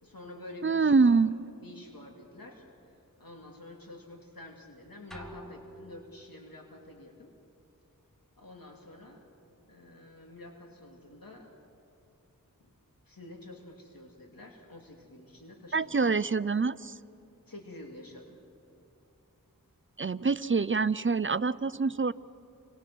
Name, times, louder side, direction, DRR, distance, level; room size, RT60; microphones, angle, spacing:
voice 1, 0.0-1.2 1.6-2.6 2.9-7.3 8.4-9.2 9.7-11.5 12.6-12.7 13.1-16.0 17.5-18.4, left 1 dB, 75° left, 1 dB, 2.9 m, -48 dB
voice 2, 0.6-1.4 15.7-16.9 20.0-22.1, right 4 dB, 35° right, 17 dB, 0.5 m, -25 dB
sound 1, 5.1-6.6, equal, ahead, 2.0 m, -48 dB
29.0 x 24.0 x 6.2 m, 2.7 s
wide cardioid pair, 55°, 35 cm